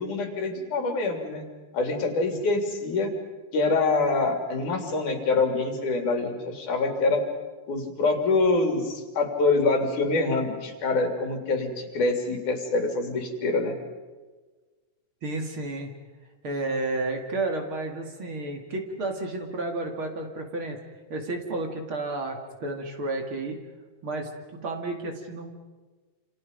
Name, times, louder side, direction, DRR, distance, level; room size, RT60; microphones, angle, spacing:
voice 1, 0.0-1.5 1.7-3.1 3.5-7.2 7.7-13.8, left 3 dB, 80° left, 3 dB, 4.5 m, -25 dB
voice 2, 15.2-15.9 16.4-20.8 21.1-23.6 24.0-25.5, right 2 dB, 45° right, 3 dB, 2.9 m, -31 dB
28.0 x 28.0 x 5.3 m, 1.3 s
omnidirectional pair, 3.5 m